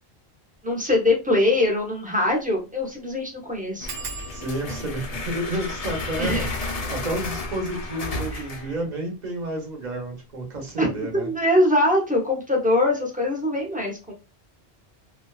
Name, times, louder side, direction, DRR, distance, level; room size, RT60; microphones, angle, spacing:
voice 1, 0.6-3.9 6.2-6.5 8.3-8.4 10.8-14.1, left 1 dB, 10° right, -1 dB, 0.5 m, -22 dB
sound 1, 0.8-0.9 1.3-1.4 1.6-1.7 2.3-2.5 2.8-2.9 3.9-9.1 9.8-10.3 10.7-11.0 11.3-11.4, right 5 dB, 90° right, 0.9 m, -44 dB
sound 2, 3.8-8.8, left 2 dB, 45° left, 0.5 m, -32 dB
voice 2, 4.3-6.5 6.9-11.3, right 1 dB, 45° right, 1 dB, 0.9 m, -30 dB
2.5 x 2.2 x 2.3 m, 0.30 s
omnidirectional pair, 1.1 m